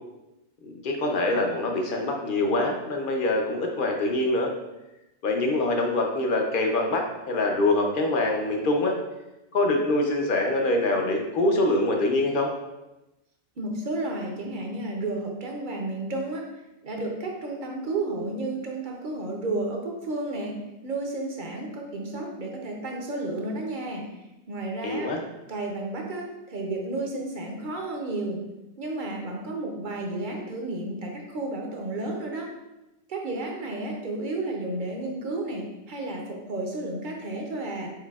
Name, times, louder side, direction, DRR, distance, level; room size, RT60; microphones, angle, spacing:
voice 1, 0.6-4.5 5.2-8.9 9.5-12.5 24.8-25.2, left 2 dB, 55° left, 2 dB, 0.7 m, -24 dB
voice 2, 13.6-16.4 16.8-20.6 20.8-24.1 24.5-25.1 25.5-28.4 28.8-32.5 33.1-37.9, right 2 dB, 50° right, 1 dB, 0.7 m, -32 dB
4.6 x 4.1 x 2.3 m, 0.97 s
omnidirectional pair, 1.2 m